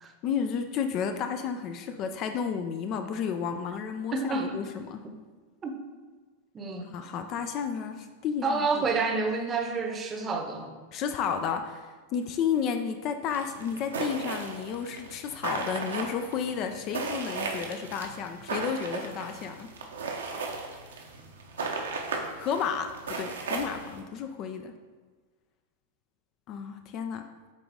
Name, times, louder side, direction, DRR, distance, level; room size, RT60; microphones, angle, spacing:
voice 1, 0.2-5.0 6.9-8.9 10.9-19.7 22.4-24.7 26.5-27.3, left 7 dB, 35° left, 7 dB, 0.4 m, -32 dB
voice 2, 4.1-4.6 5.0-5.1 5.6-5.8 6.5-6.9 8.4-10.8, right 4 dB, 25° right, 4 dB, 0.9 m, -29 dB
sound 1, 13.3-24.0, right 4 dB, 65° right, 0.9 m, -36 dB
8.2 x 3.9 x 3.5 m, 1.4 s
figure-of-eight pair, 90°, 0 cm